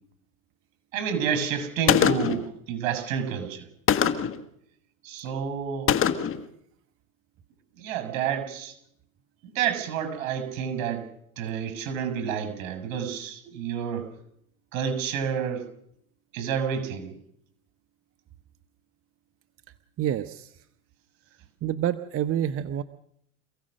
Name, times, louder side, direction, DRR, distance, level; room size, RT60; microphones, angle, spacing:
voice 1, 0.9-3.7 5.0-5.9 7.8-8.7 9.5-11.1 11.4-14.1 14.7-15.7 16.3-17.1, right 7 dB, 65° right, 10 dB, 6.4 m, -29 dB
Gunshot gunfire, 1.9-2.5 3.9-4.4 5.9-6.4, left 9 dB, 30° left, 1.6 m, -22 dB
voice 2, 20.0-20.5 21.6-22.8, right 10 dB, 35° right, 10 dB, 1.0 m, -28 dB
27.0 x 16.5 x 6.5 m, 0.73 s
supercardioid pair, 120°, 40 cm